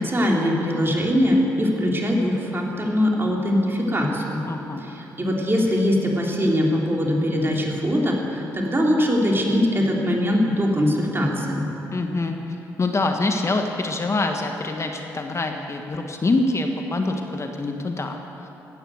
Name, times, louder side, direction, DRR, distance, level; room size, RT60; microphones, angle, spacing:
voice 1, 0.0-4.4 4.8-11.7, equal, 30° right, -2 dB, 3.6 m, -22 dB
voice 2, 4.5-4.9 11.9-12.4 12.8-18.5, left 2 dB, 35° left, 4 dB, 1.4 m, -25 dB
15.5 x 10.0 x 8.0 m, 3.0 s
hypercardioid pair, 50°, 8 cm